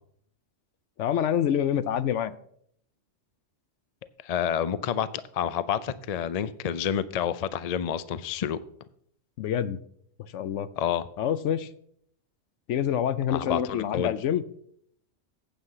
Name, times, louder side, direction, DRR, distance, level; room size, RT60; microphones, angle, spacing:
voice 1, 1.0-2.3 9.4-9.8 10.3-10.7 11.2-11.7 12.7-14.4, left 9 dB, 75° left, 14 dB, 0.9 m, -26 dB
voice 2, 4.2-8.6 10.8-11.0 13.3-14.1, left 9 dB, 50° left, 14 dB, 0.4 m, -29 dB
8.9 x 7.8 x 5.6 m, 0.66 s
omnidirectional pair, 1.3 m